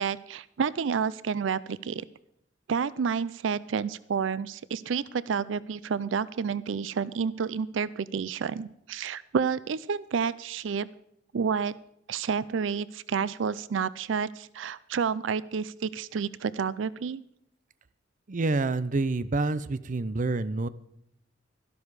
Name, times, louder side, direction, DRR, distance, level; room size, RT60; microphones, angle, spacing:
voice 1, 0.0-2.0 2.7-10.9 11.3-11.7 12.1-17.2, right 6 dB, 90° right, 19 dB, 0.4 m, -30 dB
voice 2, 18.3-20.7, right 3 dB, 45° right, 15 dB, 0.6 m, -27 dB
12.5 x 12.0 x 4.8 m, 0.78 s
head